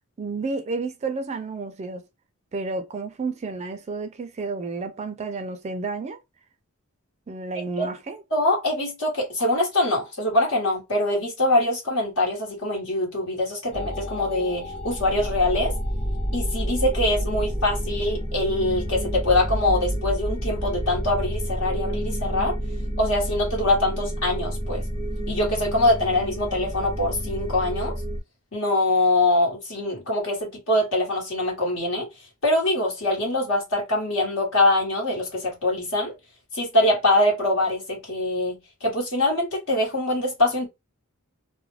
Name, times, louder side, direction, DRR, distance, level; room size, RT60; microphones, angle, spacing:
voice 1, 0.2-2.0 2.5-6.2 7.3-8.2, right 3 dB, 30° right, 0.4 m, -31 dB
voice 2, 8.3-15.7 16.3-22.6 23.0-24.8 25.3-27.9 28.5-32.1 32.4-36.1 36.5-40.7, left 1 dB, 65° left, 1.1 m, -23 dB
sound 1, 13.7-28.2, equal, 30° left, 0.8 m, -29 dB
2.3 x 2.1 x 3.1 m
head